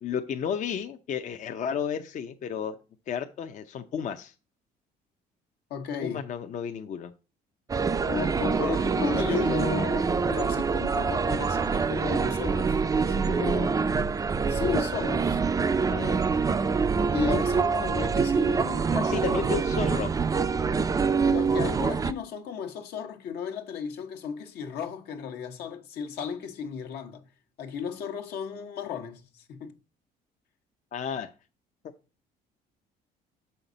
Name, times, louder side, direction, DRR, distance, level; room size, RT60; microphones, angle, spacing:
voice 1, 0.0-2.8 3.1-4.3 6.0-7.1 8.6-8.8 9.5-10.0 15.9-16.2 18.9-20.1 30.9-31.3, left 7 dB, 45° left, 0.6 m, -32 dB
voice 2, 5.7-6.3 8.0-13.9 14.5-15.4 17.1-19.6 21.2-27.2 27.6-29.8, left 7 dB, 75° left, 1.2 m, -34 dB
sound 1, 7.7-22.1, right 5 dB, 20° right, 0.4 m, -25 dB
6.4 x 5.7 x 3.9 m
cardioid pair, 110°, 17 cm